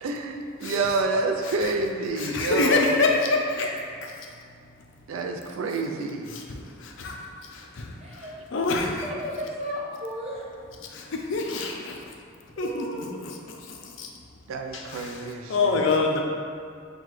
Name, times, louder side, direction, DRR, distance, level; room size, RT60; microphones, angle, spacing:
voice 1, 0.0-3.0 5.1-6.3 14.5-15.5, right 3 dB, 85° right, 3 dB, 0.4 m, -28 dB
voice 2, 0.6-1.0 1.4-1.7 2.2-3.7 5.7-8.3 8.5-9.1 10.8-12.0 12.6-12.8 13.2-14.1 14.7-16.2, left 3 dB, 65° left, 1 dB, 0.5 m, -27 dB
voice 3, 8.0-8.3 9.0-10.7 12.6-13.3, equal, 30° right, -4 dB, 0.6 m, -35 dB
5.7 x 2.3 x 3.1 m, 2.2 s
head